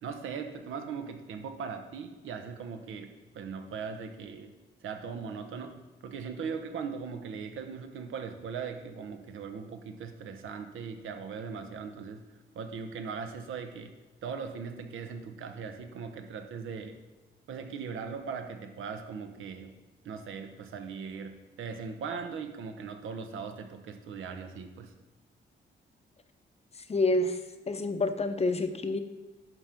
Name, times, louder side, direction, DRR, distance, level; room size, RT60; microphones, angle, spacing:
voice 1, 0.0-4.6 4.8-12.2 12.5-13.9 14.2-17.0 17.5-19.8 20.0-24.9, right 5 dB, 90° right, 7 dB, 0.9 m, -39 dB
voice 2, 26.9-27.4 27.7-29.0, left 2 dB, 30° left, 9 dB, 0.7 m, -27 dB
11.0 x 3.8 x 5.8 m, 1.2 s
cardioid pair, 90°, 20 cm